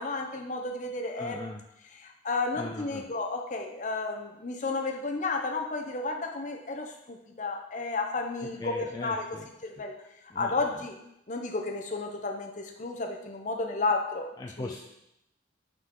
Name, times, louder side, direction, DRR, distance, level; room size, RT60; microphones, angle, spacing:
voice 1, 0.0-1.4 2.0-9.9 10.4-11.0 11.3-14.3 14.6-14.8, left 3 dB, 40° left, 3 dB, 0.7 m, -32 dB
voice 2, 1.2-1.6 2.5-3.1 8.4-9.5 10.3-10.8 14.4-14.8, left 2 dB, 20° left, 1 dB, 0.3 m, -40 dB
5.7 x 4.7 x 3.7 m, 0.82 s
head